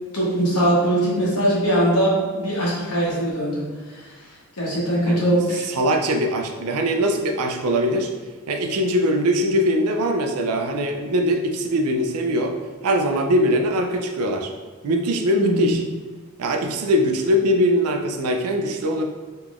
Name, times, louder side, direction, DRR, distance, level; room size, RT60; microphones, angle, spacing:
voice 1, 0.1-4.1 4.6-5.7 15.4-15.8, right 1 dB, 80° left, -5 dB, 1.1 m, -21 dB
voice 2, 5.7-8.1 8.5-12.6 12.8-14.5 14.8-15.8 16.4-19.0, equal, 80° right, 4 dB, 0.4 m, -21 dB
3.8 x 3.0 x 2.4 m, 1.3 s
head